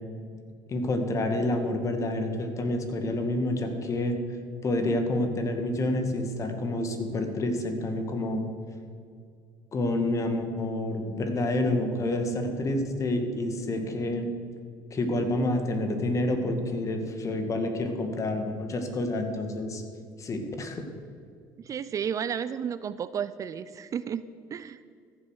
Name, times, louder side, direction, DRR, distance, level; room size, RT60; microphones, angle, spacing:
voice 1, 0.7-4.2 4.6-8.4 9.7-14.3 14.9-19.8 20.2-20.8, left 1 dB, 35° left, 6 dB, 1.9 m, -28 dB
voice 2, 21.6-24.2 24.5-24.8, right 8 dB, 40° right, 14 dB, 0.5 m, -32 dB
14.0 x 7.4 x 6.5 m, 2.3 s
supercardioid pair, 90°, 9 cm